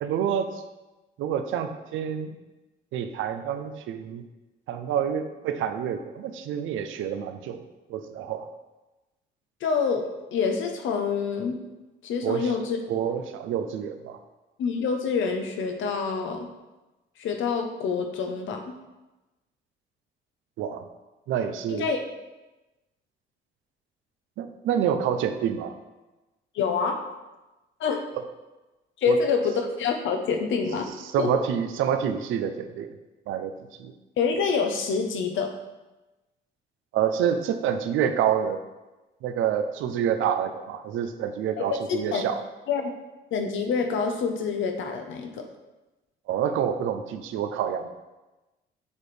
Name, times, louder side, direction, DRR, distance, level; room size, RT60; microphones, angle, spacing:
voice 1, 0.0-0.6 1.2-2.3 2.9-4.2 4.7-7.6 7.9-8.5 12.2-12.5 12.9-14.2 20.6-20.8 21.3-21.9 24.4-25.8 28.2-28.3 29.1-29.2 31.1-32.9 33.3-33.5 33.8-33.9 36.9-38.6 39.2-42.4 46.3-47.9, right 8 dB, 85° right, 8 dB, 0.5 m, -27 dB
voice 2, 9.6-11.6 12.0-12.8 14.6-16.5 17.2-18.7 21.7-22.0 26.5-27.0 27.8-28.1 29.0-30.9 31.2-31.4 34.2-35.6 41.6-41.7 41.9-42.2 42.7-42.9 43.3-45.4, left 5 dB, 75° left, 5 dB, 0.8 m, -26 dB
7.0 x 4.2 x 3.3 m, 1.1 s
cardioid pair, 90°, 20 cm